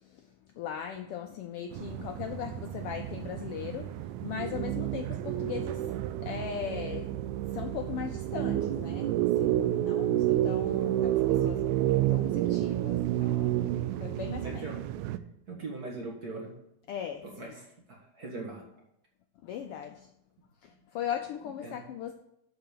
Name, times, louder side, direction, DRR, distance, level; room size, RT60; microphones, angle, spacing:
voice 1, 0.0-11.8 12.1-14.7 16.9-17.5 19.4-20.1 20.6-22.1, left 9 dB, 90° left, 5 dB, 1.3 m, -39 dB
sound 1, 1.7-15.2, right 13 dB, 85° right, 2.0 m, -30 dB
voice 2, 14.4-14.8 15.5-16.5 17.4-17.5 17.9-18.6 21.6-21.8, right 3 dB, 40° right, -1 dB, 1.6 m, -40 dB
11.5 x 4.0 x 6.7 m, 0.80 s
omnidirectional pair, 3.4 m